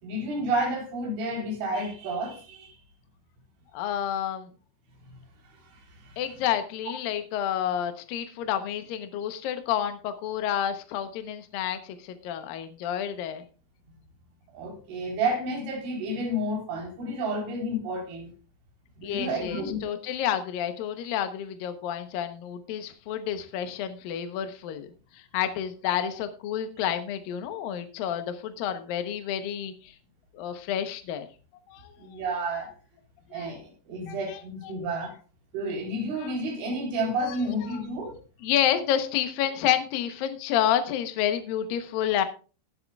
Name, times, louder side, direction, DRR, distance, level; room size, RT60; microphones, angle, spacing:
voice 1, 0.0-2.8 5.7-6.2 14.5-18.3 19.0-19.8 26.0-26.1 32.0-32.7 33.3-35.1 35.5-38.1, right 1 dB, 75° right, 6.1 m, -31 dB
voice 2, 3.7-4.5 6.2-13.4 19.0-24.9 25.1-30.0 30.3-31.3 31.7-32.4 33.3-33.5 34.1-34.9 36.2-36.3 37.2-37.8 38.4-42.2, left 10 dB, 80° left, 2.0 m, -30 dB
20.5 x 8.0 x 2.3 m
omnidirectional pair, 5.5 m